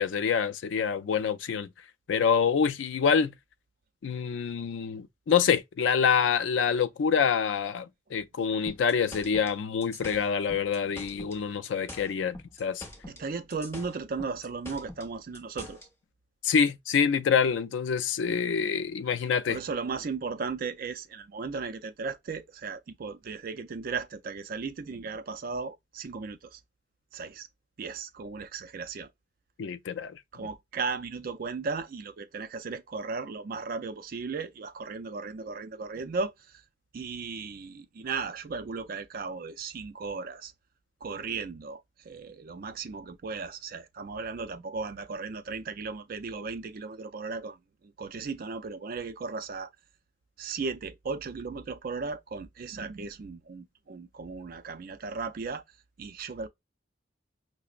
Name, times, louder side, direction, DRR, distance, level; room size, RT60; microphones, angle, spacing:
voice 1, 0.0-1.7 2.1-3.3 4.0-12.8 16.4-19.6 29.6-30.1, left 6 dB, 80° left, 0.4 m, -26 dB
sound 1, 8.7-11.4 11.7-13.2 13.5-15.9, left 1 dB, 15° left, 0.9 m, -44 dB
voice 2, 13.0-15.8 19.5-26.6 27.1-27.5 27.8-29.1 30.3-36.6 36.9-40.5 41.0-49.7 50.4-55.6 56.0-56.5, right 4 dB, 50° right, 0.4 m, -36 dB
5.7 x 2.0 x 2.4 m
head